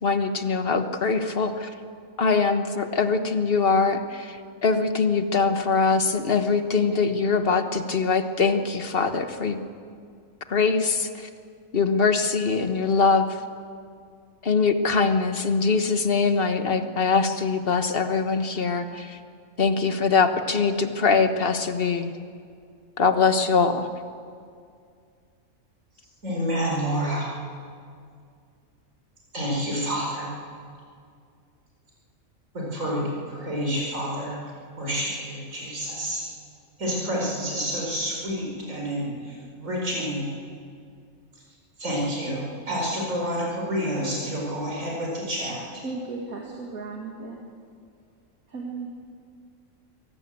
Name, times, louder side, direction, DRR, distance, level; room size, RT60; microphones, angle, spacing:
voice 1, 0.0-1.7 2.2-9.6 10.5-11.3 11.7-13.4 14.4-19.2 19.6-22.1 23.0-23.9, left 4 dB, 45° left, 8 dB, 1.4 m, -23 dB
voice 2, 26.2-27.3 29.3-30.3 32.5-34.4 34.8-36.2 36.8-40.3 41.8-45.8, equal, 70° right, -3 dB, 5.4 m, -29 dB
voice 3, 45.8-47.4 48.5-48.9, right 3 dB, 90° right, -1 dB, 2.5 m, -35 dB
24.0 x 18.0 x 7.9 m, 2.3 s
omnidirectional pair, 1.4 m